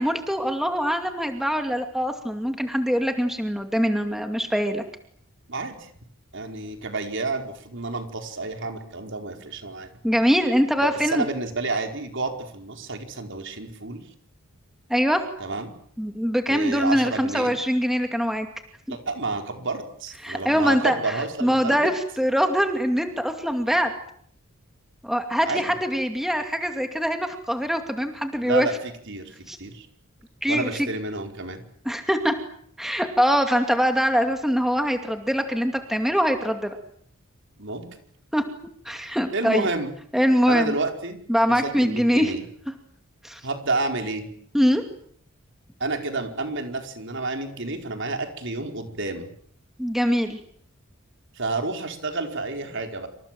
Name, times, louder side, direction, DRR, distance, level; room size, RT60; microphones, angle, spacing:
voice 1, 0.0-4.8 10.0-11.2 14.9-15.2 16.0-18.5 18.9-19.0 20.2-23.9 25.0-28.7 29.5-29.6 30.4-30.9 31.9-32.3 32.8-36.8 38.3-38.4 38.8-39.7 40.1-40.7 41.3-42.3 43.2-43.4 44.5-44.8 49.8-50.4, equal, ahead, 5 dB, 2.5 m, -23 dB
voice 2, 5.5-5.9 6.3-9.9 10.8-14.0 15.4-15.7 16.5-17.6 18.9-21.9 25.4-25.7 28.4-29.9 30.5-31.6 37.6-37.8 39.3-39.9 40.5-41.2 41.5-42.4 43.4-44.3 45.8-49.3 51.3-53.1, right 3 dB, 60° right, 5 dB, 4.8 m, -30 dB
27.5 x 26.5 x 7.8 m, 0.64 s
head